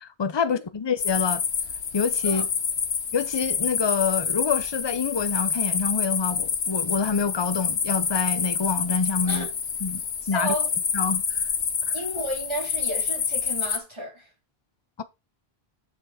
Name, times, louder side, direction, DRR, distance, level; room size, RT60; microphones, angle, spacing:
voice 1, 0.0-1.4 1.9-2.5 3.1-9.5 9.8-10.0 10.3-10.5 10.9-11.5 11.9-12.0, left 5 dB, 30° left, 0.7 m, -27 dB
sound 1, 1.0-13.8, left 6 dB, 80° left, 1.3 m, -27 dB
voice 2, 10.3-10.7 11.9-14.3, right 1 dB, 25° right, 3.4 m, -32 dB
7.3 x 6.3 x 4.9 m
omnidirectional pair, 1.1 m